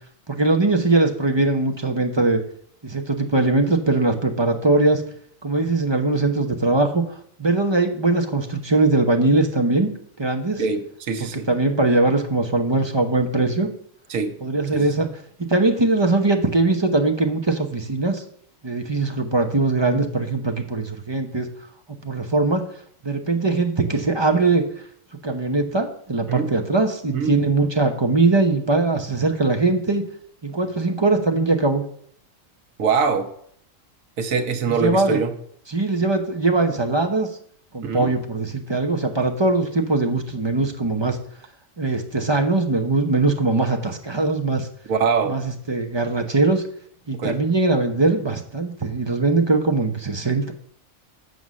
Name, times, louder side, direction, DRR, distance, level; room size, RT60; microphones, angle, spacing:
voice 1, 0.3-2.4 2.8-5.0 5.4-7.0 7.4-9.9 10.2-10.6 11.2-13.7 14.4-15.1 15.5-18.2 18.6-21.5 22.0-22.6 23.0-24.6 25.2-30.0 30.4-31.8 34.7-35.2 35.7-37.3 37.7-41.2 41.8-44.7 45.3-46.6 47.1-50.5, right 2 dB, 25° right, 3 dB, 0.7 m, -21 dB
voice 2, 10.6-11.5 14.1-14.3 14.7-14.9 26.3-26.5 27.1-27.3 32.8-33.3 34.2-35.3 37.8-38.1 44.9-45.3 47.2-47.4, right 5 dB, 85° right, 7 dB, 1.3 m, -23 dB
7.9 x 5.5 x 6.3 m, 0.64 s
omnidirectional pair, 1.4 m